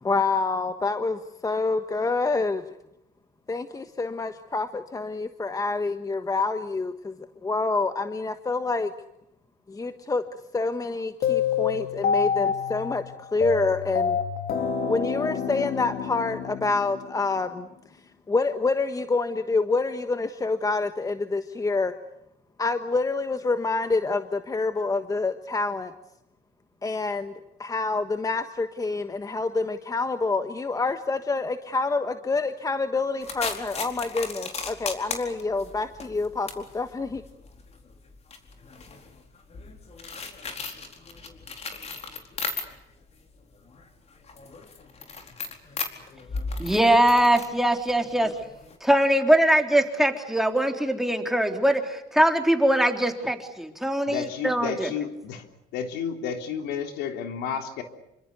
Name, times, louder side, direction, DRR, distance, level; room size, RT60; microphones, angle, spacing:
voice 1, 0.0-2.6 3.5-7.1 7.4-8.9 9.7-10.2 10.5-14.2 14.9-17.7 18.3-21.9 22.6-25.9 26.8-27.3 27.6-37.2, left 3 dB, 20° left, 9 dB, 1.4 m, -27 dB
sound 1, 11.2-17.4, left 7 dB, 60° left, 3.3 m, -27 dB
sound 2, 33.2-43.0 43.4-48.8, left 4 dB, 40° left, 4.5 m, -37 dB
voice 2, 46.6-48.3 48.8-54.9, right 1 dB, ahead, 4 dB, 3.7 m, -22 dB
voice 3, 54.1-55.4 55.7-57.8, left 7 dB, 90° left, 5 dB, 3.6 m, -31 dB
28.0 x 25.0 x 6.9 m, 0.84 s
cardioid pair, 110°, 17 cm